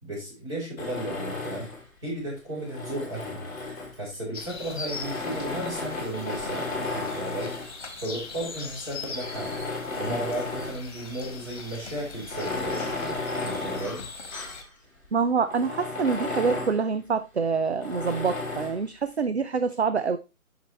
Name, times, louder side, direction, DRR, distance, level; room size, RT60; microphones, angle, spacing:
voice 1, 0.0-1.7 2.0-3.5 4.0-6.6 6.9-7.6 8.0-9.7 10.0-14.0, right 1 dB, 20° right, 4.4 m, -34 dB
Tools, 0.8-1.9 2.5-4.2 4.8-7.8 8.5-8.6 9.1-10.9 11.2-11.3 12.2-14.6 15.0-15.1 15.5-16.8 17.8-18.8, left 2 dB, 5° left, 1.5 m, -33 dB
sound 1, 4.3-14.6, left 4 dB, 50° left, 1.6 m, -41 dB
voice 2, 15.1-20.2, right 5 dB, 50° right, 0.5 m, -26 dB
9.4 x 6.0 x 3.2 m
figure-of-eight pair, 170°, 42 cm